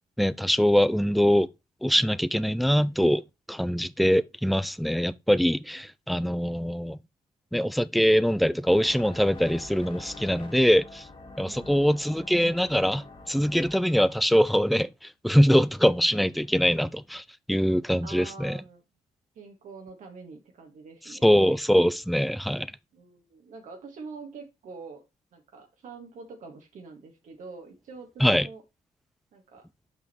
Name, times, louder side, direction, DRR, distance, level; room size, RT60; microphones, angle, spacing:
voice 1, 0.2-1.5 1.8-3.2 3.5-7.0 7.5-11.1 11.4-18.6 21.2-22.7 28.2-28.5, equal, ahead, 0.5 m, -23 dB
sound 1, 8.7-13.7, left 3 dB, 40° left, 2.4 m, -46 dB
voice 2, 11.4-12.2 18.0-18.8 19.3-21.3 22.9-25.0 25.3-28.6 29.3-29.6, right 4 dB, 70° right, 1.7 m, -45 dB
6.1 x 5.1 x 4.4 m
cardioid pair, 75°, 14 cm